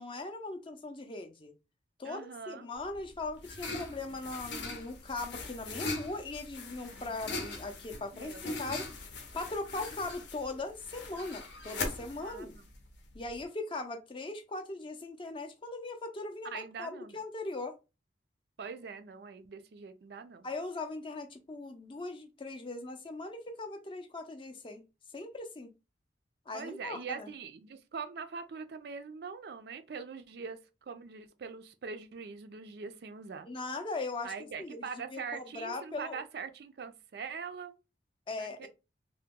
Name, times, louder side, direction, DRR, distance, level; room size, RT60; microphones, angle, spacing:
voice 1, 0.0-1.5 2.0-8.8 9.3-12.6 13.1-17.7 20.4-24.8 25.1-25.7 26.5-27.3 33.4-34.8 35.1-36.2 38.3-38.7, left 2 dB, 25° left, 0.4 m, -39 dB
voice 2, 2.0-2.7 8.1-8.5 12.2-12.6 16.4-17.2 18.6-20.5 26.5-33.5 34.2-37.8 38.4-38.7, right 5 dB, 55° right, 0.4 m, -43 dB
sound 1, 2.8-13.4, left 3 dB, 75° left, 0.7 m, -41 dB
2.8 x 2.1 x 3.6 m
head